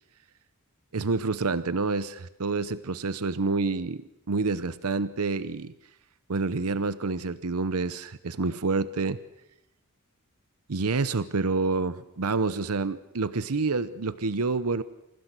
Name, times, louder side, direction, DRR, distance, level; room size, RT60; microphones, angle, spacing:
voice 1, 0.9-5.7 6.3-9.2 10.7-14.8, right 3 dB, 80° right, 14 dB, 0.8 m, -28 dB
27.0 x 16.0 x 8.2 m, 0.92 s
head